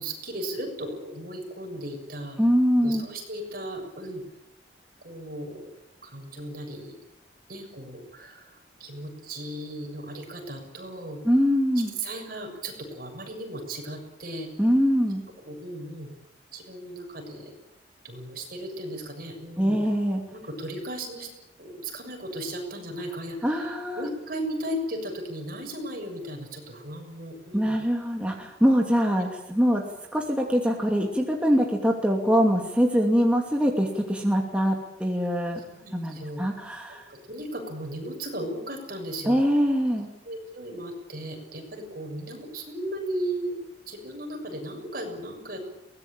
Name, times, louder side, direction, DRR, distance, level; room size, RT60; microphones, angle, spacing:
voice 1, 0.0-2.4 2.8-4.2 5.0-5.7 6.0-7.0 7.5-11.2 11.8-14.5 15.4-16.1 16.5-17.5 18.0-19.8 20.3-21.3 21.6-27.8 31.0-31.1 35.6-36.4 36.9-39.4 40.3-43.6 43.9-45.6, right 1 dB, 55° right, 3 dB, 7.0 m, -36 dB
voice 2, 2.4-3.1 11.2-11.9 14.6-15.2 19.6-20.2 23.4-24.0 27.5-29.8 30.1-35.6 35.9-37.1 39.3-40.1, equal, 5° right, 0 dB, 2.7 m, -23 dB
23.0 x 19.0 x 9.0 m, 0.85 s
head